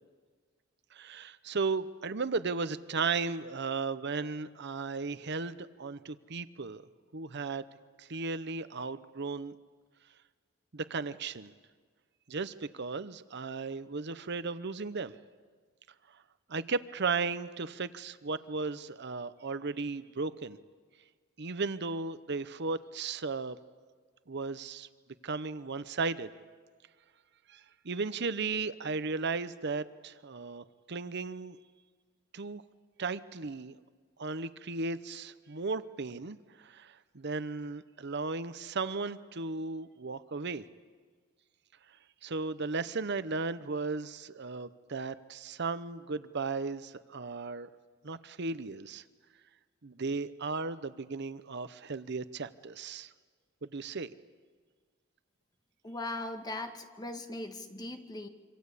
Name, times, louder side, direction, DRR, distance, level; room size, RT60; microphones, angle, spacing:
voice 1, 0.9-6.8 7.1-7.6 8.0-9.5 10.7-11.5 12.3-15.1 16.5-20.6 21.4-23.6 24.3-24.9 25.2-26.3 27.5-31.6 32.3-32.6 33.0-33.8 34.2-40.6 42.2-47.7 48.0-49.0 49.8-53.1 53.6-54.1, right 4 dB, 60° right, 14 dB, 0.9 m, -35 dB
voice 2, 55.8-58.3, left 2 dB, 20° left, 6 dB, 1.8 m, -39 dB
26.5 x 25.5 x 8.4 m, 1.5 s
head